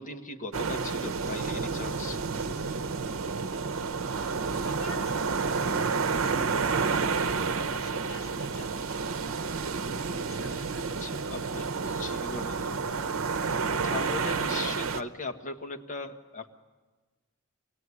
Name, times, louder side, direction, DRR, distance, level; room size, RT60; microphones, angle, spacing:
voice 1, 0.0-2.2 11.0-13.1 13.4-16.5, left 2 dB, 40° left, 5 dB, 1.4 m, -39 dB
sound 1, 0.5-15.0, right 5 dB, 80° right, 0.8 m, -30 dB
voice 2, 4.6-9.9 10.1-11.4, left 1 dB, 85° left, 3 dB, 3.1 m, -46 dB
25.0 x 18.0 x 9.7 m, 1.3 s
head